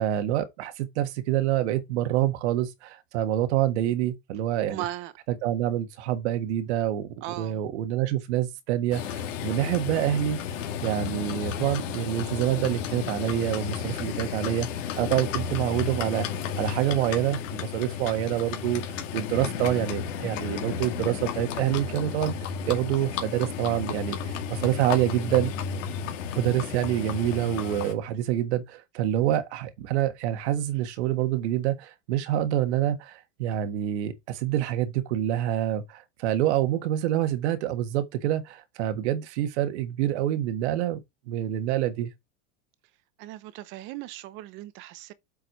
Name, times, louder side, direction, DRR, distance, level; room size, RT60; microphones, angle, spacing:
voice 1, 0.0-4.8 5.4-10.4 10.8-16.3 16.6-18.8 19.1-22.3 22.7-25.5 26.4-42.1, right 12 dB, 65° right, 1.6 m, -27 dB
voice 2, 4.6-5.1 7.2-7.6 43.2-45.1, right 15 dB, 30° right, 0.7 m, -37 dB
Livestock farm animals working animals, 8.9-27.9, left 7 dB, 85° left, 2.4 m, -33 dB
7.8 x 4.8 x 4.7 m
supercardioid pair, 165°, 37 cm